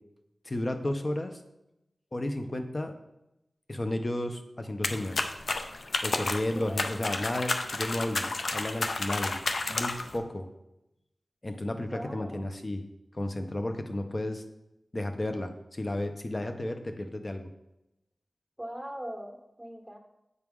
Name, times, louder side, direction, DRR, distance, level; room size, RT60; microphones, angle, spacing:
voice 1, 0.4-1.4 2.1-2.9 3.7-5.2 6.0-9.4 9.7-10.5 11.4-12.8 13.1-14.4 14.9-17.5, left 1 dB, 40° left, 6 dB, 0.9 m, -33 dB
sound 1, 4.8-10.2, left 3 dB, 75° left, 0.5 m, -31 dB
voice 2, 6.5-6.9 11.9-12.4 18.6-20.0, equal, ahead, 2 dB, 1.4 m, -40 dB
8.1 x 4.7 x 3.7 m, 0.90 s
cardioid pair, 40°, 0 cm